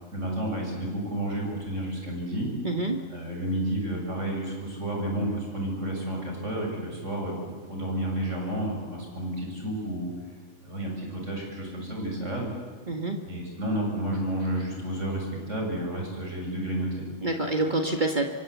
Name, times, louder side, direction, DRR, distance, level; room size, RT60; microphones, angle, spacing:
voice 1, 0.1-2.5 3.1-10.1 10.6-12.5 13.2-17.0, right 1 dB, 85° right, 0 dB, 7.6 m, -31 dB
voice 2, 2.6-3.0 12.9-13.2 17.2-18.3, right 2 dB, 40° right, 4 dB, 1.7 m, -27 dB
26.5 x 24.0 x 8.3 m, 1.5 s
omnidirectional pair, 1.2 m